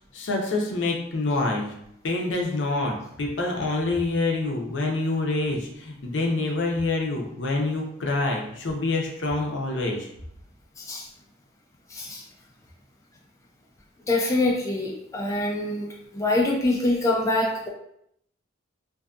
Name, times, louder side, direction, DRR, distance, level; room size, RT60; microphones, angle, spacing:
voice 1, 0.1-1.7 2.0-10.0, left 2 dB, 65° left, 0 dB, 0.5 m, -26 dB
voice 2, 11.9-12.2 14.1-15.9 16.1-17.7, left 2 dB, 15° left, -2 dB, 0.3 m, -24 dB
2.6 x 2.4 x 2.3 m, 0.74 s
head